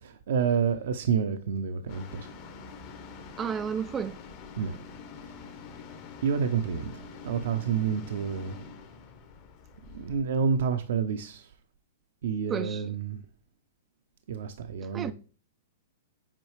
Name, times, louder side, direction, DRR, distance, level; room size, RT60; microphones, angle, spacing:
voice 1, 0.0-2.3 4.6-4.8 6.2-8.6 9.9-11.5 12.2-13.2 14.3-15.1, right 6 dB, 65° right, 0.6 m, -29 dB
sound 1, 1.9-10.2, left 5 dB, 45° left, 1.2 m, -46 dB
voice 2, 3.4-4.2 12.5-12.9 14.8-15.1, right 7 dB, 20° right, 0.3 m, -32 dB
7.4 x 4.6 x 3.2 m
hypercardioid pair, 110°, 0 cm